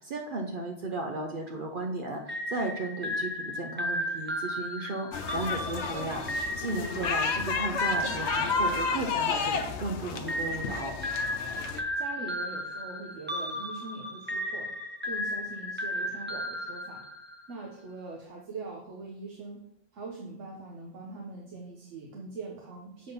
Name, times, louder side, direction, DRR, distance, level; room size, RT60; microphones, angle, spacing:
voice 1, 0.0-11.0, right 2 dB, 50° right, 2 dB, 0.8 m, -35 dB
sound 1, 2.3-9.7 10.3-17.5, left 1 dB, 10° right, 0.6 m, -34 dB
sound 2, 5.1-11.8, left 5 dB, 65° left, 1.0 m, -32 dB
voice 2, 5.5-5.8 12.0-14.7 15.0-17.0 17.5-19.6 19.9-23.1, right 3 dB, 75° right, -1 dB, 1.3 m, -42 dB
7.5 x 3.9 x 5.5 m, 0.78 s
omnidirectional pair, 1.3 m